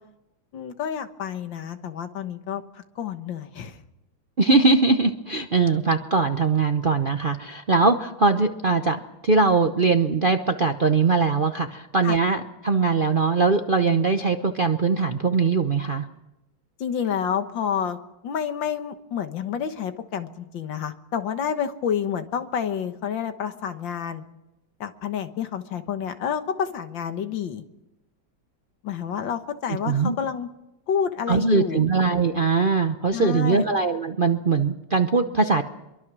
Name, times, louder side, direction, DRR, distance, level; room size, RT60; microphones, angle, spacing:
voice 1, 0.5-3.8 12.0-12.2 16.8-18.0 18.2-24.2 24.8-27.6 28.8-30.5 30.9-31.8 33.1-33.7, left 8 dB, 75° left, 9 dB, 2.0 m, -29 dB
voice 2, 4.4-16.1 29.8-30.1 31.3-35.6, right 4 dB, 45° right, 5 dB, 0.7 m, -21 dB
25.0 x 23.0 x 6.2 m, 0.94 s
omnidirectional pair, 2.1 m